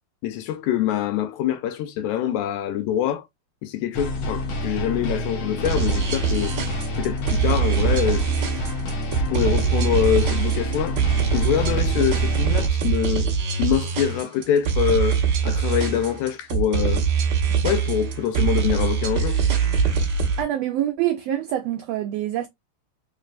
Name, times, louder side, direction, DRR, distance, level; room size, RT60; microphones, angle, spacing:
voice 1, 0.2-3.2 3.6-6.5 7.0-8.5 9.3-11.0 11.3-13.3 13.6-17.1 17.6-19.4, left 10 dB, 85° left, 2.0 m, -25 dB
sound 1, 3.9-12.7, left 1 dB, 60° left, 1.4 m, -29 dB
sound 2, 5.6-20.4, right 7 dB, 60° right, 1.2 m, -23 dB
voice 2, 20.4-22.5, right 12 dB, 90° right, 1.4 m, -25 dB
4.2 x 3.2 x 2.4 m
omnidirectional pair, 3.4 m